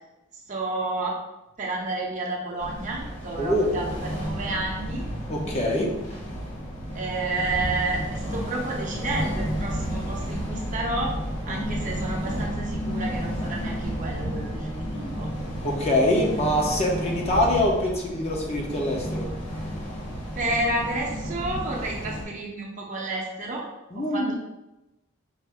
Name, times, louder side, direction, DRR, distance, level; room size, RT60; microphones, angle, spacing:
voice 1, 0.5-1.2 1.6-5.0 6.9-11.1 11.4-15.3 20.3-23.7 23.9-24.3, right 2 dB, 35° right, -2 dB, 0.8 m, -30 dB
sound 1, 2.6-22.2, equal, 60° left, 1.4 m, -32 dB
voice 2, 3.4-3.9 5.3-5.9 11.5-11.6 15.6-19.3 23.9-24.3, left 1 dB, 30° left, -1 dB, 0.7 m, -24 dB
5.5 x 2.0 x 4.7 m, 0.97 s
head